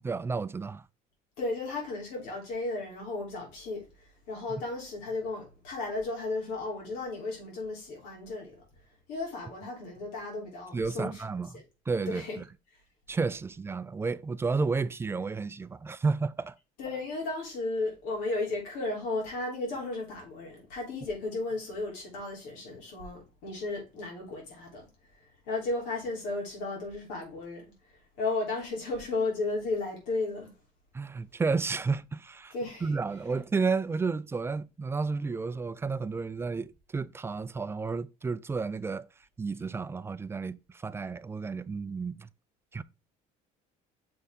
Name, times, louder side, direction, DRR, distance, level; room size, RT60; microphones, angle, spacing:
voice 1, 0.0-0.8 10.7-11.5 11.9-12.2 13.1-16.6 30.9-32.5 32.8-39.1 39.4-42.3 42.7-42.8, right 4 dB, 15° right, 0.3 m, -31 dB
voice 2, 1.4-8.6 9.1-11.2 12.1-12.4 16.8-24.9 25.2-30.5 32.5-33.0, left 3 dB, 90° left, 3.3 m, -34 dB
6.7 x 4.1 x 3.5 m
cardioid pair, 125°, 16 cm